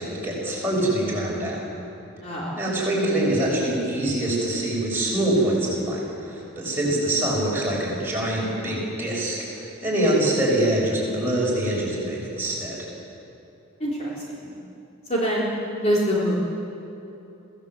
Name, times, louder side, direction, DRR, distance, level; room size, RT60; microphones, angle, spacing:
voice 1, 0.0-1.6 2.5-12.8, right 1 dB, 10° right, -5 dB, 6.8 m, -24 dB
voice 2, 15.1-15.5 15.8-16.4, equal, 30° left, -6 dB, 3.5 m, -24 dB
26.0 x 17.5 x 8.1 m, 2.9 s
head